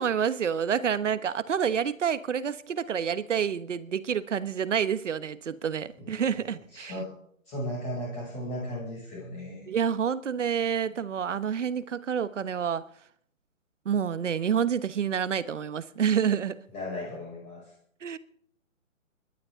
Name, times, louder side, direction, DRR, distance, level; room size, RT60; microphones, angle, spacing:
voice 1, 0.0-6.9 9.7-12.9 13.8-16.6 18.0-18.2, right 8 dB, 60° right, 1.2 m, -28 dB
voice 2, 6.0-7.1 7.4-9.7 16.7-17.7, equal, 15° left, 6.6 m, -36 dB
28.0 x 12.0 x 3.8 m
hypercardioid pair, 160°, 40 cm